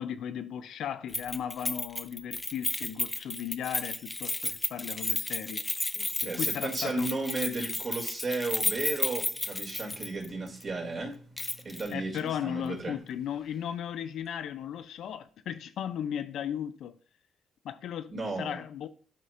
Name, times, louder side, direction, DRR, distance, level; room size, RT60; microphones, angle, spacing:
voice 1, 0.0-5.6 6.2-7.1 11.9-17.0 17.6-18.9, left 9 dB, 75° left, 0.5 m, -36 dB
Keys jangling, 1.1-10.3 10.6-10.7 11.4-11.9 12.2-12.3, left 2 dB, 15° left, 0.5 m, -33 dB
voice 2, 6.0-11.2 11.6-12.9 18.1-18.6, right 2 dB, 45° right, 2.5 m, -34 dB
11.0 x 4.3 x 2.5 m
cardioid pair, 90°, 0 cm